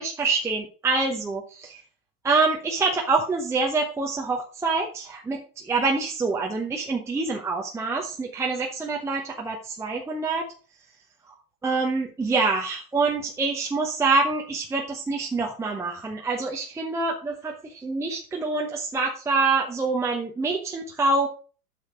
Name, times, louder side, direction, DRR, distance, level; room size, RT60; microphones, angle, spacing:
voice 1, 0.0-1.8 2.2-10.5 11.6-21.3, right 3 dB, 5° right, 0 dB, 0.9 m, -26 dB
7.8 x 6.8 x 4.8 m, 0.37 s
hypercardioid pair, 115°, 45 cm